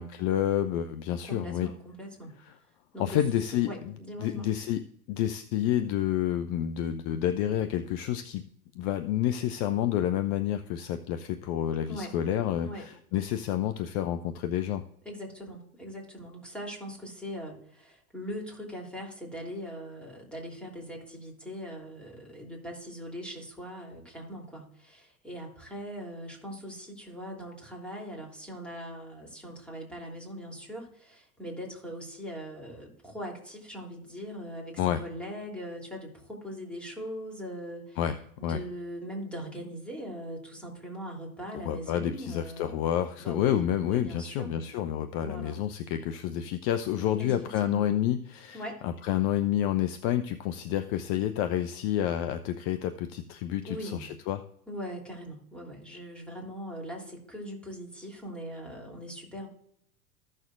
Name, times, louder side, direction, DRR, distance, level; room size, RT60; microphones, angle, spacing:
voice 1, 0.0-1.7 2.5-2.6 3.0-3.9 4.2-4.8 5.1-8.4 8.8-14.8 34.8-35.0 38.0-38.2 38.4-38.6 41.6-54.4, left 11 dB, 45° left, 9 dB, 0.7 m, -29 dB
voice 2, 1.2-2.3 2.9-3.2 3.6-4.5 11.9-12.2 12.6-12.9 15.0-38.0 38.4-42.8 43.2-44.7 45.2-45.6 47.1-47.3 47.6-48.0 48.5-48.8 53.6-54.0 54.7-59.5, equal, 5° left, -2 dB, 3.1 m, -41 dB
15.5 x 6.5 x 2.5 m, 0.70 s
hypercardioid pair, 90°, 43 cm